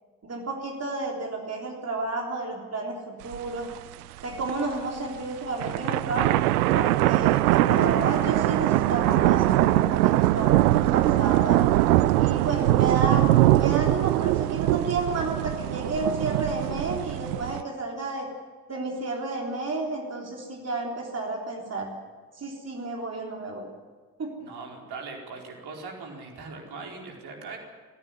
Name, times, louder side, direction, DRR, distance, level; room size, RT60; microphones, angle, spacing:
voice 1, 0.2-3.7 4.2-6.3 6.7-11.6 12.2-13.3 13.6-18.3 18.7-21.9 22.3-23.7 24.2-24.3, right 3 dB, 35° right, 0 dB, 3.7 m, -31 dB
sound 1, 3.3-3.4 3.8-3.9 4.3-4.7 5.5-17.6, right 16 dB, 70° right, 0.6 m, -22 dB
voice 2, 24.4-27.6, right 4 dB, 55° right, 0 dB, 4.6 m, -40 dB
22.0 x 16.0 x 9.9 m, 1.4 s
figure-of-eight pair, 40°, 46 cm